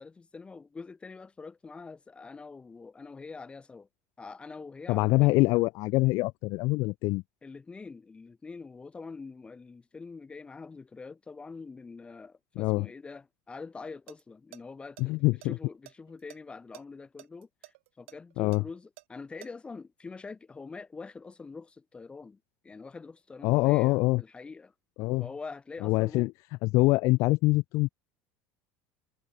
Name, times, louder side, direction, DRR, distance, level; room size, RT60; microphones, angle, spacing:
voice 1, 0.0-3.9 4.2-5.4 7.4-24.7 25.2-26.3, left 4 dB, 15° left, 2.6 m, -45 dB
voice 2, 4.9-7.2 12.6-12.9 15.0-15.5 18.4-18.6 23.4-24.2 25.0-25.3 25.8-26.3 26.6-27.9, left 22 dB, 60° left, 0.5 m, -24 dB
sound 1, 14.1-14.2 14.5-14.6 15.0-16.4 16.7-16.8 17.2-19.5, right 20 dB, 90° right, 2.4 m, -50 dB
supercardioid pair, 125°, 6 cm